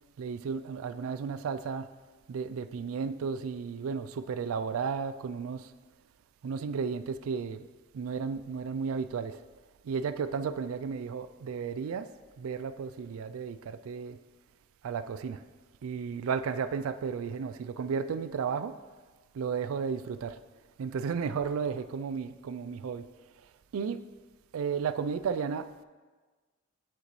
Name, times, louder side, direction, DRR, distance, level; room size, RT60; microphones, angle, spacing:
voice 1, 0.2-1.9 2.3-5.7 6.4-7.7 7.9-9.4 9.8-12.1 12.4-14.2 14.8-15.4 15.8-18.7 19.3-20.4 20.8-23.1 23.7-24.0 24.5-25.8, right 6 dB, 90° right, 0.3 m, -33 dB
7.5 x 6.7 x 3.1 m
head